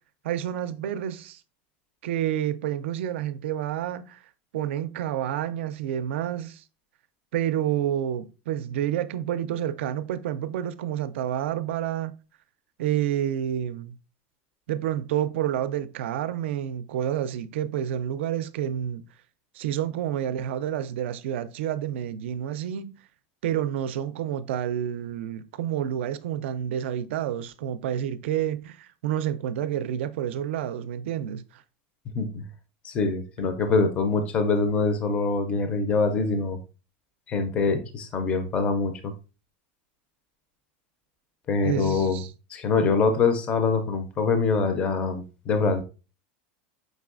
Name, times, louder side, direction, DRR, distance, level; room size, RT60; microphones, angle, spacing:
voice 1, 0.2-1.4 2.0-4.2 4.5-6.6 7.3-12.1 12.8-14.0 14.7-19.0 19.5-23.0 23.4-31.6 41.6-42.3, right 10 dB, 90° right, 0.3 m, -29 dB
voice 2, 32.8-36.6 37.3-39.1 41.5-42.2 42.5-45.8, left 4 dB, 20° left, 0.4 m, -24 dB
5.2 x 3.1 x 2.4 m
supercardioid pair, 170°, 6 cm